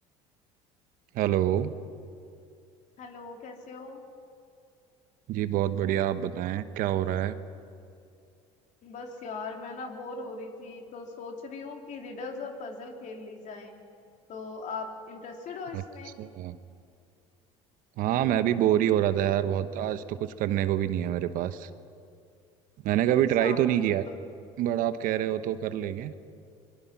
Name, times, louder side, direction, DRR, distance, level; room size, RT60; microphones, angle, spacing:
voice 1, 1.1-1.7 5.3-7.4 15.7-15.8 16.2-16.6 18.0-21.7 22.8-24.0 24.6-26.1, right 11 dB, 65° right, 12 dB, 1.1 m, -26 dB
voice 2, 3.0-4.0 8.8-13.7 14.3-16.2 23.1-23.6 24.1-24.2, left 4 dB, 55° left, 2 dB, 3.5 m, -40 dB
23.5 x 22.5 x 5.9 m, 2.4 s
supercardioid pair, 80°, 15 cm